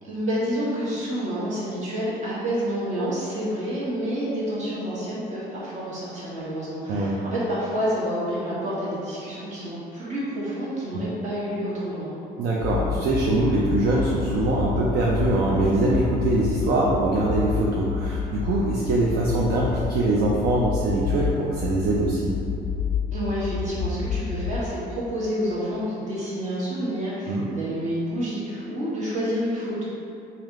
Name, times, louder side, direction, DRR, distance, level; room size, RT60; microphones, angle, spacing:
voice 1, 0.0-12.2 23.1-29.8, equal, 45° right, -8 dB, 1.3 m, -29 dB
voice 2, 12.4-22.3 27.3-27.5, right 2 dB, 65° right, -4 dB, 0.5 m, -23 dB
sound 1, 12.6-24.6, left 6 dB, 60° left, 0.4 m, -29 dB
3.4 x 2.8 x 3.6 m, 2.8 s
cardioid pair, 110°, 17 cm